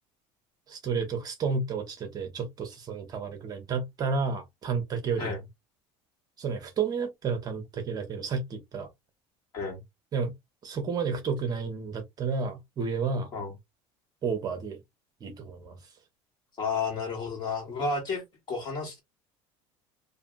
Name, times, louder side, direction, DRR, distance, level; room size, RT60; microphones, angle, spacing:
voice 1, 0.7-5.4 6.4-8.9 10.1-10.3 10.6-13.3 14.2-14.8 15.2-15.7, right 5 dB, 30° right, 0.8 m, -31 dB
voice 2, 16.6-19.0, left 4 dB, 35° left, 1.6 m, -32 dB
2.7 x 2.6 x 2.5 m
cardioid pair, 135°, 12 cm